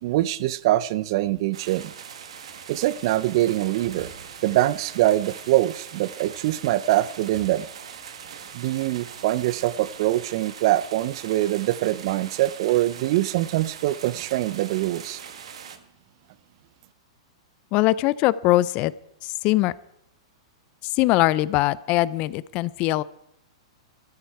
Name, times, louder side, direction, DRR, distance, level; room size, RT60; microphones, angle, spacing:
voice 1, 0.0-1.9 2.7-4.1 4.4-7.7 8.5-15.2, right 15 dB, 55° right, 19 dB, 0.5 m, -23 dB
sound 1, 1.5-15.8, right 7 dB, 75° right, 1.3 m, -41 dB
voice 2, 17.7-18.9 19.2-19.7 20.9-23.0, left 17 dB, 40° left, 19 dB, 0.5 m, -21 dB
13.0 x 13.0 x 4.7 m, 0.77 s
hypercardioid pair, 135°, 3 cm